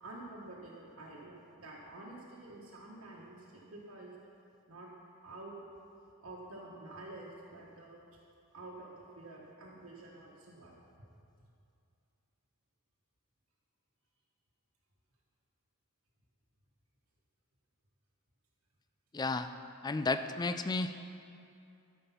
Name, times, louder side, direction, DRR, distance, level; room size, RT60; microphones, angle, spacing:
voice 1, 0.0-4.2 4.7-4.9 5.2-5.6 6.2-8.0 8.5-10.8, right 2 dB, 75° right, -5 dB, 1.3 m, -49 dB
voice 2, 19.1-19.5 19.8-20.9, left 3 dB, 20° left, 10 dB, 0.3 m, -32 dB
13.0 x 5.2 x 5.8 m, 2.5 s
head